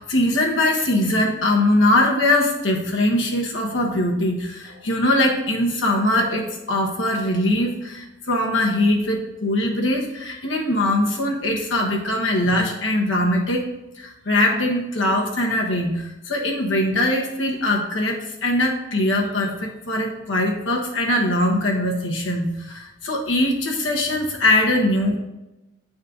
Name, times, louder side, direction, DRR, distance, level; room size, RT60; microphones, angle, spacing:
voice 1, 0.0-13.7 14.0-25.2, left 1 dB, 75° left, 0 dB, 1.4 m, -21 dB
9.3 x 4.3 x 3.9 m, 0.96 s
head